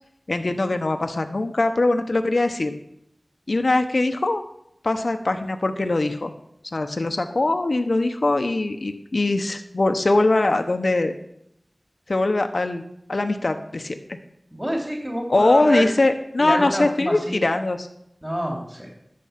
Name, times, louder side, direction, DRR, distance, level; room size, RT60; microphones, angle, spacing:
voice 1, 0.3-2.7 3.5-4.4 4.8-6.3 6.7-11.1 12.1-12.8 13.1-14.2 15.3-17.9, left 2 dB, 70° left, 7 dB, 0.8 m, -22 dB
voice 2, 14.5-15.8 16.4-17.4 18.2-18.9, equal, 10° right, -1 dB, 3.1 m, -27 dB
12.0 x 7.6 x 5.8 m, 0.76 s
wide cardioid pair, 45°, 0 cm